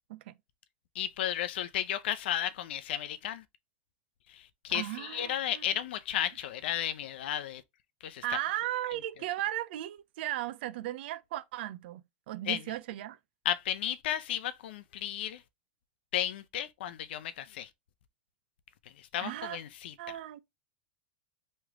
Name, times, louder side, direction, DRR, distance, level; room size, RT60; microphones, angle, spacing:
voice 1, 0.9-3.4 4.3-7.6 8.0-8.2 12.5-12.6 13.4-15.4 16.1-17.7 19.0-19.9, left 11 dB, 75° left, 0.6 m, -33 dB
voice 2, 4.7-5.7 8.2-12.0 12.3-13.2 19.2-19.6 20.0-20.4, right 14 dB, 70° right, 0.5 m, -36 dB
3.2 x 3.1 x 3.6 m
hypercardioid pair, 115°, 6 cm